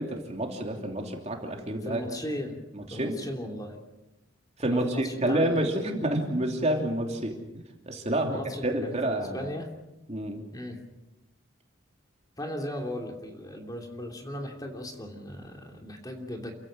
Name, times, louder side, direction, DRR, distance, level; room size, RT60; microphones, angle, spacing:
voice 1, 0.0-2.0 2.7-3.2 4.6-9.5 10.1-10.4, right 1 dB, 35° right, 2 dB, 3.0 m, -29 dB
voice 2, 1.8-2.6 2.9-3.8 4.6-5.7 6.1-6.2 8.2-9.7 10.5-10.8 12.4-16.5, left 1 dB, 20° left, 2 dB, 3.0 m, -37 dB
28.5 x 16.0 x 7.6 m, 1.0 s
head